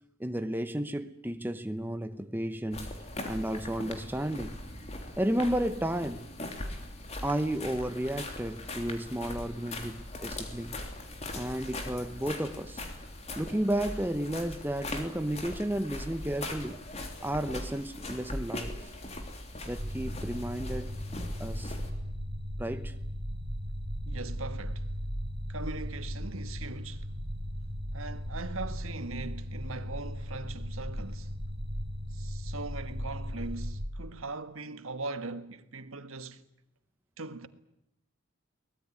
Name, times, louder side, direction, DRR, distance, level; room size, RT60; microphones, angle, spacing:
voice 1, 0.2-2.9 3.3-4.6 5.2-6.3 7.2-10.8 11.3-12.8 13.3-16.8 17.2-18.8 19.7-20.9 21.4-21.7 22.6-22.9, right 1 dB, 10° right, 0.9 m, -32 dB
sound 1, 2.7-21.9, left 1 dB, 30° left, 3.2 m, -40 dB
sound 2, 19.8-33.9, equal, 25° right, 4.6 m, -37 dB
voice 2, 24.0-24.8 25.5-27.1 27.9-31.3 32.1-36.4 37.2-37.5, right 3 dB, 80° right, 1.6 m, -40 dB
23.5 x 19.5 x 9.7 m
head